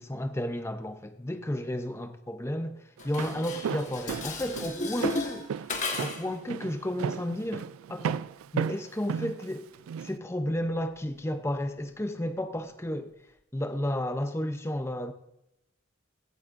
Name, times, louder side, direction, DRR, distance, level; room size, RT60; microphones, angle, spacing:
voice 1, 0.0-5.5 6.0-8.2 8.5-9.7 10.0-13.1 13.5-15.1, left 1 dB, 15° left, 0.6 m, -32 dB
Dishes pots and pans, 3.0-6.4, left 3 dB, 35° left, 1.4 m, -34 dB
Walk footsteps, 3.0-10.1, right 7 dB, 90° right, 0.3 m, -34 dB
16.5 x 12.0 x 2.6 m
head